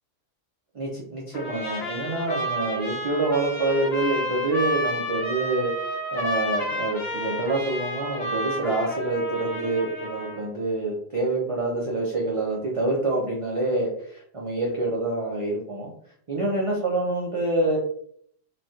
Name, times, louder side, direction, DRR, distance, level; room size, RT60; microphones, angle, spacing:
voice 1, 0.7-15.9 16.3-17.8, right 2 dB, 40° right, -4 dB, 0.5 m, -26 dB
Trumpet, 1.3-10.5, equal, 55° left, 1.1 m, -31 dB
3.1 x 2.3 x 2.7 m, 0.63 s
omnidirectional pair, 1.3 m